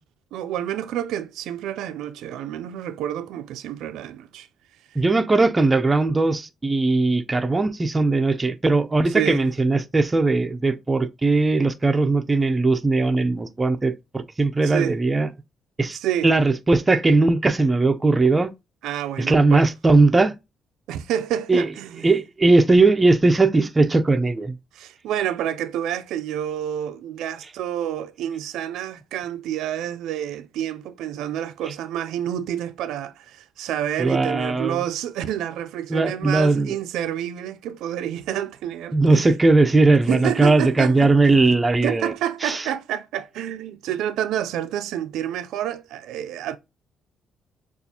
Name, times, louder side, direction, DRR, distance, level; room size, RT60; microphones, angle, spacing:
voice 1, 0.3-4.5 9.1-9.5 14.6-15.0 15.9-16.3 18.8-19.7 20.9-22.1 24.7-39.3 40.1-41.6 41.8-46.6, right 11 dB, 85° right, 0.3 m, -29 dB
voice 2, 5.0-15.3 15.8-16.0 16.2-18.5 19.2-20.4 21.5-21.7 22.0-24.5 34.0-34.8 35.9-36.7 38.9-42.1 42.4-42.7, right 3 dB, 20° right, 0.5 m, -19 dB
6.6 x 2.4 x 2.8 m
cardioid pair, 90°, 0 cm